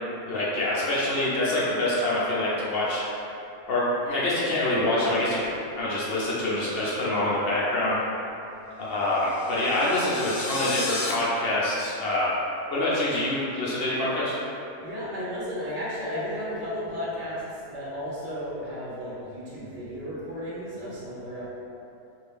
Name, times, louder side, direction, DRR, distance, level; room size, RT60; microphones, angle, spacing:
voice 1, 0.3-3.3 3.7-5.4 5.8-8.0 8.8-12.3 12.7-14.4, left 1 dB, 50° left, -7 dB, 0.8 m, -25 dB
sound 1, 9.2-11.1, left 3 dB, 85° left, 1.1 m, -34 dB
voice 2, 14.8-21.5, equal, 35° right, -8 dB, 0.7 m, -34 dB
2.7 x 2.6 x 3.4 m, 2.8 s
omnidirectional pair, 1.6 m